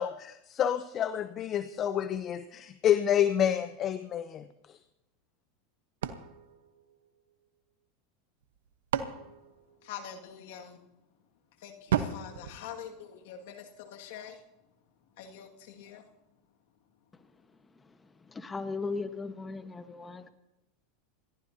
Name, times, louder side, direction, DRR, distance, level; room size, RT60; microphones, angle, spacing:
voice 1, 0.0-4.8, left 10 dB, 40° left, 0.7 m, -29 dB
sound 1, 6.0-7.6 8.4-10.4 11.9-13.5, right 8 dB, 85° right, 1.1 m, -36 dB
voice 2, 9.8-10.8 11.6-14.4 15.2-16.0, left 8 dB, 70° left, 2.0 m, -45 dB
voice 3, 18.3-20.3, left 4 dB, 15° left, 1.2 m, -37 dB
28.0 x 15.0 x 2.8 m
hypercardioid pair, 105°, 0 cm